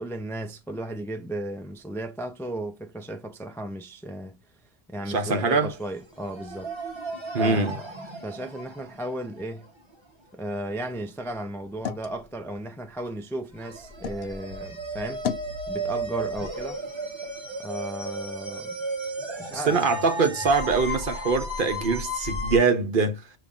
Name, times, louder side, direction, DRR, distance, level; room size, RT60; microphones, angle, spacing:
voice 1, 0.0-4.4 4.9-6.8 7.3-7.9 8.2-9.7 10.3-15.3 15.7-16.8 17.6-18.8 19.4-19.8, right 1 dB, 5° left, 0.4 m, -35 dB
voice 2, 5.1-5.7 7.3-7.8 19.5-23.2, right 4 dB, 55° right, 1.0 m, -23 dB
sound 1, 5.7-5.9 6.2-9.7 13.6-22.6, right 1 dB, 25° right, 1.0 m, -34 dB
sound 2, 11.1-14.3 14.7-15.6, left 8 dB, 75° left, 0.9 m, -38 dB
7.0 x 3.0 x 2.4 m
omnidirectional pair, 1.1 m